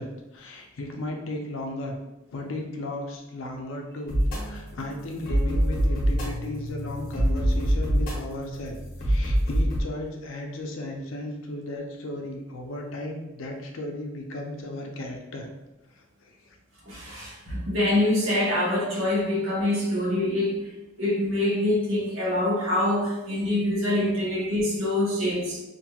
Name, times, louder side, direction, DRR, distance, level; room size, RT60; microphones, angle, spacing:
voice 1, 0.0-2.0 2.3-15.5 16.3-16.6, left 1 dB, 65° left, 2 dB, 0.4 m, -35 dB
sound 1, 4.1-9.8, equal, 45° left, 0.9 m, -25 dB
voice 2, 16.9-20.6 21.0-25.6, left 1 dB, 70° right, -4 dB, 0.9 m, -25 dB
2.8 x 2.5 x 2.3 m, 1.0 s
head